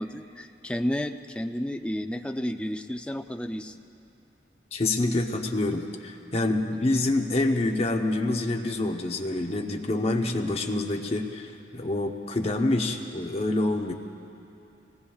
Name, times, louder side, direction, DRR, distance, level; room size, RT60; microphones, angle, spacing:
voice 1, 0.0-3.8 6.5-6.6, equal, 5° left, 6 dB, 0.4 m, -32 dB
voice 2, 4.7-13.9, left 2 dB, 35° left, 3 dB, 0.8 m, -27 dB
23.0 x 18.5 x 2.4 m, 2.7 s
head